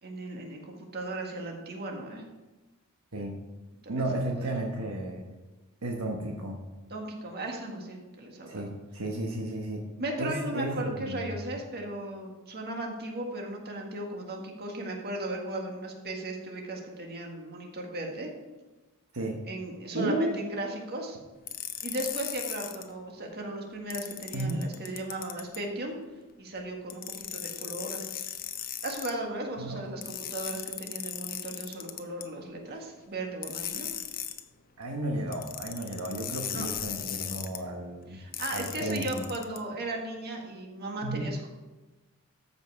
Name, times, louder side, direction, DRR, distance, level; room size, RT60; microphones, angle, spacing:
voice 1, 0.0-2.2 3.9-4.0 4.4-4.5 6.9-8.7 10.0-18.3 19.5-21.2 21.8-26.0 26.4-28.2 28.8-33.9 36.5-36.7 38.1-41.5, right 1 dB, 45° right, 1 dB, 1.7 m, -36 dB
voice 2, 3.9-5.3 5.8-6.6 8.5-9.8 10.2-11.5 19.1-19.4 19.9-20.3 24.3-24.6 29.6-29.8 34.8-38.2 38.5-39.2 41.0-41.3, right 1 dB, 70° right, 1 dB, 1.2 m, -33 dB
sound 1, 21.5-22.8 23.9-25.6 26.9-29.1 30.0-32.2 33.4-34.4 35.3-37.6 38.3-39.6, left 10 dB, 40° left, 0.7 m, -37 dB
13.5 x 5.5 x 4.7 m, 1.1 s
head